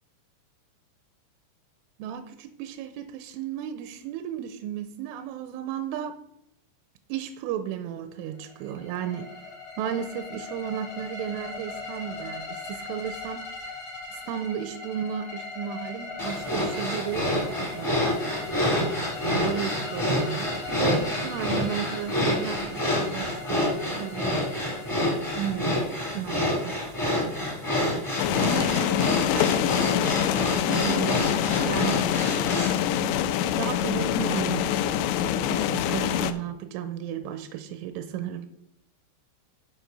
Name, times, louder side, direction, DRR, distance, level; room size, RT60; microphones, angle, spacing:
voice 1, 2.0-6.2 7.1-9.3 9.8-13.5 14.1-18.3 19.3-24.5 25.3-26.7 28.4-29.6 30.7-32.0 33.0-33.2 33.6-34.8 35.5-38.5, right 9 dB, 85° right, 9 dB, 3.1 m, -34 dB
sound 1, 8.4-26.2, left 3 dB, 65° left, 1.2 m, -40 dB
sound 2, 16.2-32.8, left 1 dB, 20° left, 0.5 m, -28 dB
sound 3, 28.2-36.3, left 10 dB, 85° left, 2.6 m, -25 dB
11.0 x 5.0 x 5.3 m, 0.78 s
omnidirectional pair, 5.6 m